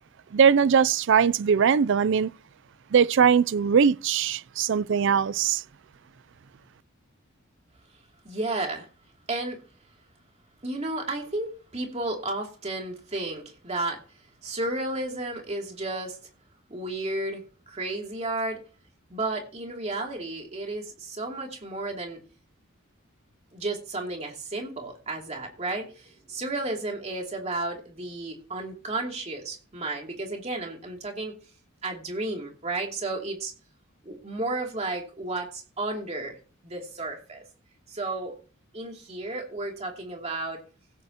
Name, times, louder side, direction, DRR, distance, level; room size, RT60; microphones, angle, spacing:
voice 1, 0.3-2.3 2.9-5.6, right 7 dB, 60° right, 0.4 m, -21 dB
voice 2, 8.2-8.9 9.3-9.6 10.6-14.0 14.4-16.2 16.7-18.6 19.1-22.2 23.5-31.3 31.8-33.5 34.0-36.4 36.6-37.4 37.9-38.4 38.7-40.6, right 2 dB, 30° right, 2.7 m, -32 dB
16.0 x 8.8 x 2.9 m
head